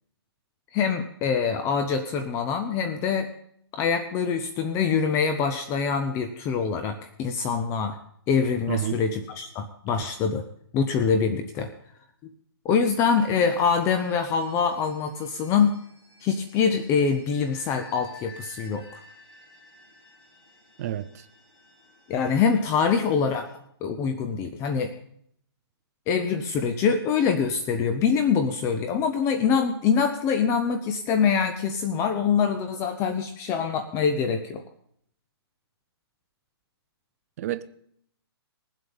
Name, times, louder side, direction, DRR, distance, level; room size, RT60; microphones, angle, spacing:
voice 1, 0.7-3.3 3.7-8.0 8.3-10.4 10.7-11.7 12.6-15.7 16.2-19.0 22.1-23.5 23.8-24.9 26.1-34.6, left 6 dB, 20° left, 0.7 m, -24 dB
voice 2, 8.7-9.0 20.8-21.3 37.4-37.7, right 12 dB, 35° right, 0.5 m, -29 dB
sound 1, 13.0-23.6, left 2 dB, 65° left, 6.6 m, -53 dB
20.5 x 7.8 x 5.4 m
hypercardioid pair, 155°, 14 cm